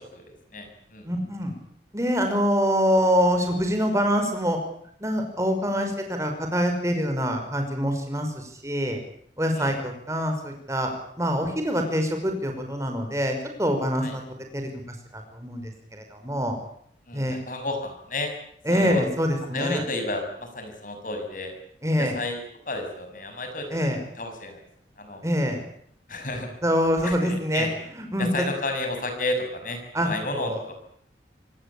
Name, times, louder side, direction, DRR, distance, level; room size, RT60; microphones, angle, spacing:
voice 1, 0.0-1.1 5.7-5.8 9.5-9.7 14.0-14.2 17.1-18.3 18.7-19.1 19.5-21.5 22.0-24.6 25.0-25.2 26.1-26.5 27.0-27.7 28.2-30.7, left 2 dB, 50° left, 5 dB, 6.4 m, -32 dB
voice 2, 1.1-1.5 1.9-4.6 5.0-9.0 9.4-10.9 11.2-14.2 14.5-14.7 15.1-16.6 17.1-17.4 18.7-19.8 21.8-22.1 23.7-24.0 25.2-25.6 26.6-27.7 28.0-28.4 29.9-30.6, equal, 15° right, 4 dB, 5.4 m, -25 dB
26.0 x 19.5 x 8.7 m, 0.66 s
head